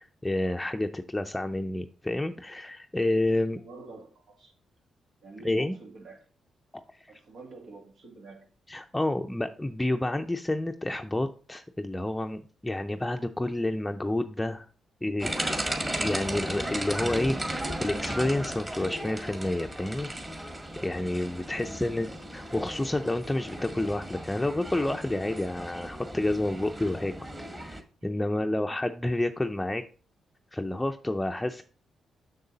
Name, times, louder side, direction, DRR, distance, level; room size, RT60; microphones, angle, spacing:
voice 1, 0.0-3.6 5.4-5.7 6.9-7.1 8.7-14.7 15.0-15.3 16.0-20.1 20.8-22.1 22.3-27.1 27.5-29.8 30.5-31.6, left 1 dB, 10° left, 5 dB, 0.5 m, -29 dB
voice 2, 3.6-4.5 5.2-6.3 7.1-8.5 21.4-21.9 28.0-28.7, right 3 dB, 75° right, 2 dB, 2.1 m, -48 dB
sound 1, 15.2-27.8, right 1 dB, 20° right, 1.8 m, -35 dB
6.6 x 6.5 x 4.0 m, 0.38 s
cardioid pair, 70°, 0 cm